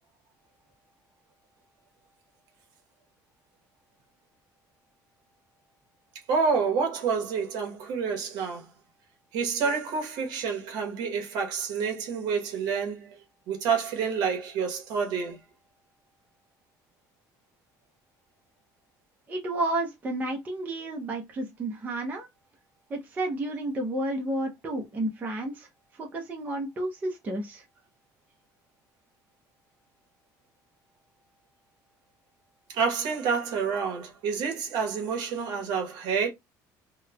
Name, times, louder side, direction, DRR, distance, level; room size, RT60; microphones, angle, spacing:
voice 1, 6.3-8.6 9.3-13.2 13.5-15.4 32.7-36.3, right 5 dB, 65° right, 1.0 m, -28 dB
voice 2, 19.3-22.3 22.9-25.7 26.0-27.6, right 1 dB, 20° right, 0.6 m, -31 dB
2.9 x 2.1 x 2.2 m
cardioid pair, 170°, 8 cm